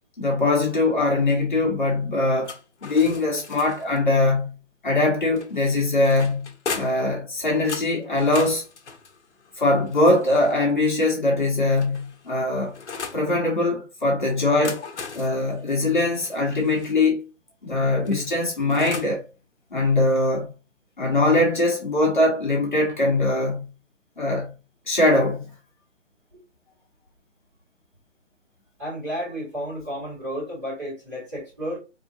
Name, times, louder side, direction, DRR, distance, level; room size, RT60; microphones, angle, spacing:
voice 1, 0.2-2.5 2.8-4.6 4.8-8.6 9.6-12.7 13.1-14.8 15.1-17.2 17.6-19.2 19.7-20.5 21.0-23.7 24.2-24.5 24.9-25.5, left 2 dB, 40° left, 1.2 m, -22 dB
sound 1, 2.4-4.0 5.4-7.1 7.7-10.6 11.4-13.3 14.4-16.9 18.1-19.2, left 5 dB, 65° left, 0.9 m, -38 dB
voice 2, 28.8-31.8, equal, 15° right, 1.6 m, -32 dB
4.2 x 2.8 x 2.6 m
hypercardioid pair, 175°, 37 cm